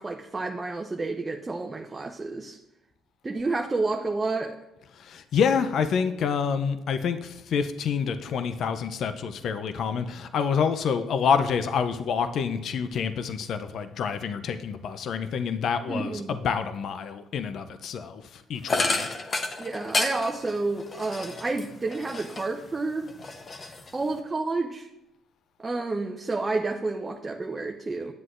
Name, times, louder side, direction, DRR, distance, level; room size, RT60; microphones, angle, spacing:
voice 1, 0.0-2.6 3.2-4.6 15.9-16.4 19.6-23.1 23.9-24.9 25.6-28.1, right 3 dB, 25° right, 4 dB, 0.6 m, -30 dB
voice 2, 4.9-19.1, left 6 dB, 65° left, 10 dB, 0.5 m, -27 dB
sound 1, 18.7-22.7 23.0-24.2, left 3 dB, 40° left, 0.9 m, -31 dB
9.5 x 7.5 x 2.5 m, 0.91 s
supercardioid pair, 65°, 0 cm